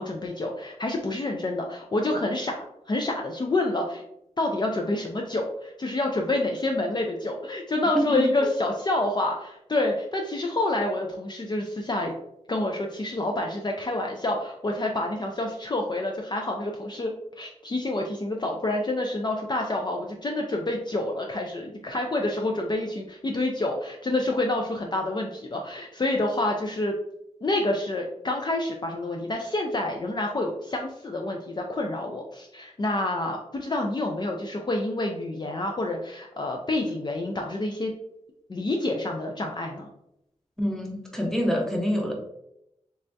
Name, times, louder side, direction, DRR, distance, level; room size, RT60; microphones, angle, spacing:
voice 1, 0.0-4.0 4.4-12.1 12.5-26.9 27.4-37.9 38.5-39.9, left 2 dB, 35° left, 1 dB, 0.4 m, -28 dB
voice 2, 40.6-42.1, equal, 5° left, 0 dB, 0.7 m, -26 dB
3.3 x 3.3 x 2.6 m, 0.81 s
wide cardioid pair, 105°, 12 cm